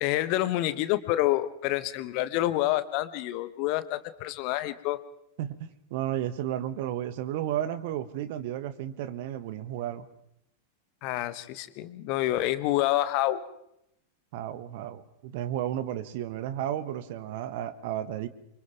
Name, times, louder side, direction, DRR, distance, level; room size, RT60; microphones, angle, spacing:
voice 1, 0.0-5.0 11.0-13.4, left 15 dB, 45° left, 13 dB, 1.3 m, -28 dB
voice 2, 5.4-10.1 14.3-18.3, right 11 dB, 50° right, 15 dB, 1.3 m, -33 dB
29.0 x 25.0 x 3.6 m, 0.79 s
figure-of-eight pair, 90°, 0 cm